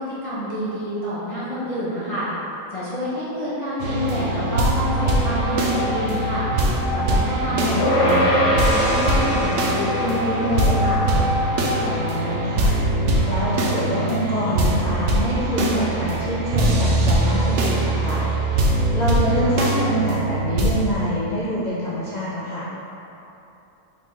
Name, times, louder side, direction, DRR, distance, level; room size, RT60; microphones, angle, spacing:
voice 1, 0.0-2.3 2.7-6.5 6.9-11.1, equal, 25° left, -11 dB, 0.8 m, -27 dB
sound 1, 3.8-20.9, right 2 dB, 65° right, 0.7 m, -22 dB
sound 2, 3.9-12.0, left 1 dB, 65° left, 0.8 m, -29 dB
voice 2, 7.4-7.9 11.8-12.7 13.3-18.2 18.9-22.7, equal, 85° left, -9 dB, 0.3 m, -25 dB
sound 3, 7.8-17.5, left 1 dB, 45° left, 1.2 m, -26 dB
5.1 x 3.6 x 2.9 m, 2.9 s
omnidirectional pair, 1.6 m